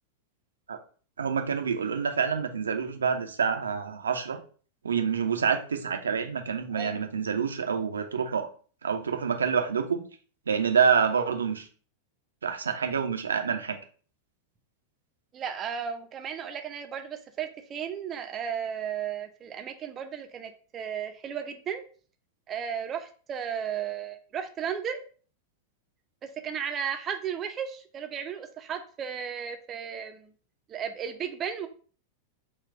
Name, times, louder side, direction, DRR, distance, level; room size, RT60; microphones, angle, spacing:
voice 1, 1.2-4.4 4.8-8.5 8.8-10.0 10.5-11.7 12.4-13.8, right 6 dB, 70° right, 6 dB, 0.5 m, -27 dB
voice 2, 15.3-21.8 22.5-25.0 26.4-30.3 30.7-31.7, right 8 dB, 25° right, 7 dB, 0.5 m, -34 dB
4.1 x 2.3 x 4.5 m, 0.41 s
figure-of-eight pair, 90°, 0 cm